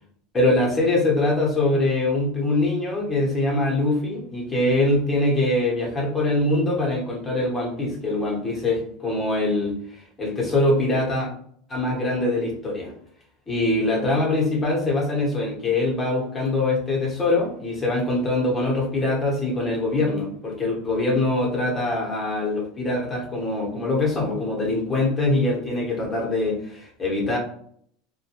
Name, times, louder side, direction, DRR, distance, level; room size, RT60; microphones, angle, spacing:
voice 1, 0.3-11.3 11.7-12.9 13.5-27.4, left 2 dB, 15° left, -2 dB, 0.9 m, -23 dB
2.2 x 2.2 x 2.8 m, 0.62 s
supercardioid pair, 135°, 0 cm